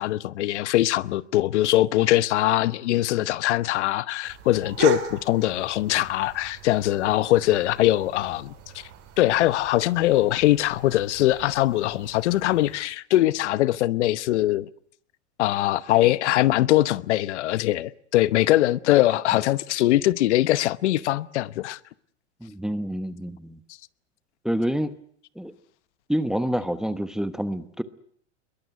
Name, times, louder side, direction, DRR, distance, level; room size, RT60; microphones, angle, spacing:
voice 1, 0.0-8.5 9.2-14.7 15.4-21.8, left 15 dB, 70° left, 1.0 m, -22 dB
sound 1, 4.2-12.8, right 9 dB, 40° right, 5.8 m, -38 dB
voice 2, 22.4-23.6 24.4-24.9 25.4-25.5 26.1-27.8, equal, ahead, 1.0 m, -27 dB
22.0 x 21.5 x 9.4 m
supercardioid pair, 140°, 35 cm